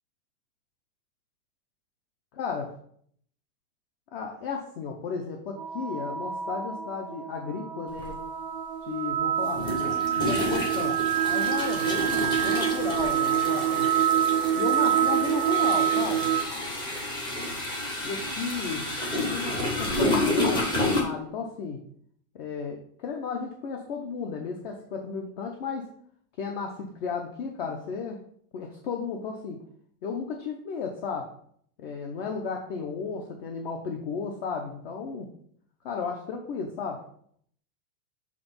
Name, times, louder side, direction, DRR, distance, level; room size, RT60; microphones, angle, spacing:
voice 1, 2.3-2.7 4.1-8.2 8.8-11.0 11.3-13.9 14.6-16.3 18.0-21.8 22.3-25.9 26.4-28.2 28.5-29.6 30.0-31.4 31.8-35.3 35.8-37.1, left 5 dB, 40° left, 2 dB, 0.9 m, -34 dB
sound 1, 5.6-16.4, right 10 dB, 40° right, 0.5 m, -26 dB
sound 2, 8.0-8.1 9.5-21.0, left 1 dB, 10° left, 0.8 m, -30 dB
7.7 x 3.5 x 5.5 m, 0.62 s
supercardioid pair, 180°, 43 cm